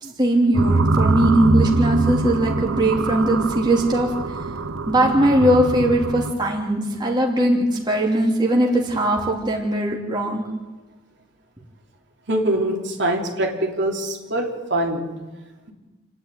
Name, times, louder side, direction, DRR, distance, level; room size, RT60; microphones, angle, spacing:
voice 1, 0.0-4.1 4.9-10.4, right 1 dB, 20° right, -1 dB, 2.9 m, -20 dB
sound 1, 0.5-6.3, right 2 dB, 85° right, 1.2 m, -23 dB
voice 2, 12.3-15.1, right 1 dB, 60° right, 1 dB, 3.2 m, -23 dB
28.5 x 10.5 x 9.7 m, 1.2 s
head